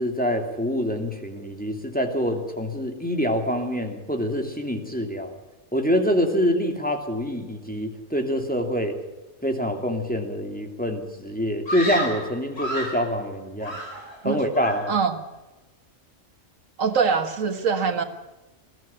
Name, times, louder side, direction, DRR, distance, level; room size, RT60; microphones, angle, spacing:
voice 1, 0.0-5.3 5.7-9.0 9.4-13.8 14.2-14.9, equal, 5° left, 3 dB, 2.7 m, -25 dB
Screaming, 11.7-13.1 13.6-14.3 14.5-15.0, equal, 55° left, 4.5 m, -31 dB
voice 2, 16.8-18.0, right 5 dB, 90° right, 8 dB, 1.9 m, -23 dB
21.0 x 15.0 x 8.8 m, 1.1 s
omnidirectional pair, 1.3 m